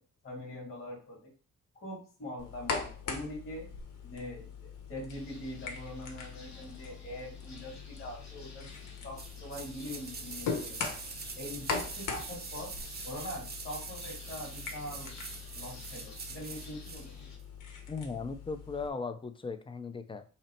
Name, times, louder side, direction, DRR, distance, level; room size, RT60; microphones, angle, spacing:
voice 1, 0.2-1.3 1.8-3.7 4.0-8.7 9.0-10.8 11.3-12.7 13.0-15.2 15.5-17.1, left 1 dB, 40° left, -4 dB, 2.2 m, -43 dB
sound 1, 2.4-18.9, left 5 dB, 80° left, 1.0 m, -41 dB
sound 2, 5.1-17.4, left 2 dB, 60° left, 1.3 m, -53 dB
sound 3, 9.2-17.1 17.4-17.5, right 5 dB, 30° right, 0.7 m, -44 dB
voice 2, 17.9-20.2, left 4 dB, 15° left, 9 dB, 0.5 m, -37 dB
5.8 x 2.0 x 4.4 m, 0.37 s
cardioid pair, 105°, 31 cm